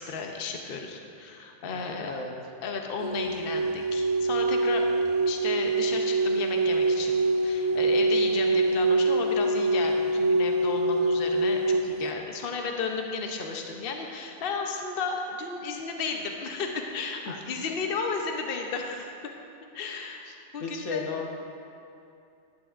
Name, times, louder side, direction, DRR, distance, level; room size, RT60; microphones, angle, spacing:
voice 1, 0.0-2.1 2.6-4.9 5.3-19.1 19.7-21.3, left 4 dB, 55° left, 2 dB, 0.9 m, -34 dB
voice 2, 1.7-2.3 20.6-21.3, left 4 dB, 80° left, 2 dB, 1.3 m, -34 dB
sound 1, 3.0-12.1, right 2 dB, 85° right, 1.1 m, -25 dB
15.0 x 11.5 x 2.5 m, 2.6 s
omnidirectional pair, 1.2 m